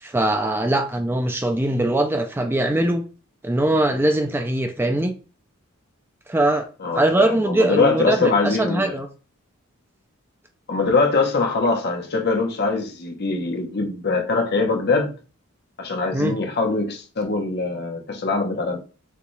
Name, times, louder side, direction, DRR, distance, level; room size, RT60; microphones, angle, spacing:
voice 1, 0.0-3.0 3.4-5.1 6.3-6.7 6.9-9.1 16.1-16.4, right 1 dB, 10° right, 0.4 m, -21 dB
voice 2, 6.8-9.0 10.7-15.1 15.8-18.8, left 3 dB, 50° left, 0.9 m, -22 dB
6.6 x 2.4 x 3.1 m
head